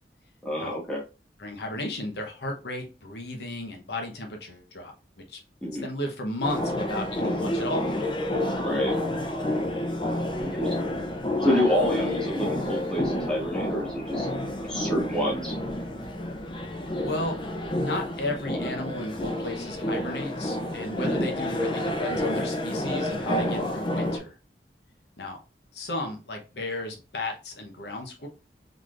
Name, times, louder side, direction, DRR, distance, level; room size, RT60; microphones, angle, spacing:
voice 1, 0.4-1.0 5.6-5.9 8.6-8.9 10.4-10.7 11.4-14.3 14.7-15.5 21.0-21.2, left 1 dB, 5° left, -4 dB, 1.2 m, -27 dB
voice 2, 1.4-5.4 5.8-7.8 16.9-17.4 17.8-24.4 25.2-25.4 25.7-28.3, left 1 dB, 75° left, 2 dB, 0.9 m, -34 dB
sound 1, 6.4-24.2, left 1 dB, 25° left, 0.6 m, -29 dB
3.9 x 3.2 x 2.5 m, 0.31 s
head